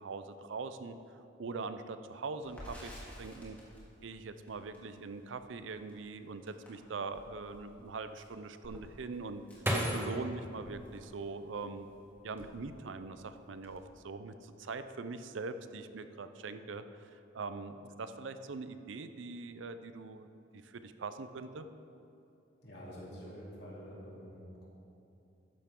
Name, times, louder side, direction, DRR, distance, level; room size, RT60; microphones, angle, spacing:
voice 1, 0.0-3.6 4.0-9.4 9.8-11.9 12.2-20.3 20.5-21.7, right 4 dB, 75° right, 10 dB, 0.5 m, -42 dB
Crackle, 2.4-10.5 10.8-11.0 11.3-12.0, equal, 10° left, 2.1 m, -54 dB
sound 1, 8.6-11.7 12.2-13.0 13.3-13.8, equal, 10° right, 1.0 m, -37 dB
voice 2, 22.6-24.6, equal, 55° left, -5 dB, 2.6 m, -47 dB
12.5 x 10.0 x 3.7 m, 2.7 s
head